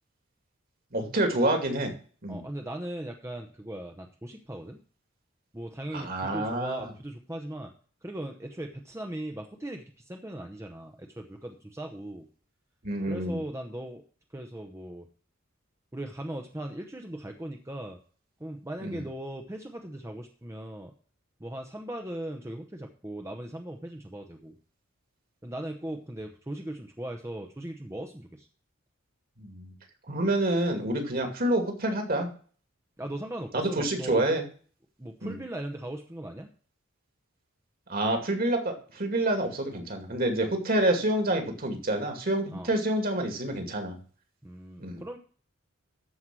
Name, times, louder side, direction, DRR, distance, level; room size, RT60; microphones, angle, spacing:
voice 1, 0.9-1.9 2.2-2.4 5.9-6.9 12.8-13.4 18.8-19.0 29.4-29.7 30.1-32.3 33.5-34.5 35.2-35.4 37.9-44.0 44.8-45.0, right 1 dB, 45° right, 5 dB, 2.4 m, -28 dB
voice 2, 2.3-4.8 5.5-7.7 8.0-12.3 13.1-14.0 14.3-15.1 15.9-18.0 18.4-20.9 21.4-24.6 25.4-28.5 33.0-34.3 35.0-36.5 42.5-42.7 44.4-45.2, right 1 dB, 15° right, 4 dB, 0.9 m, -38 dB
13.5 x 4.8 x 6.1 m, 0.43 s
head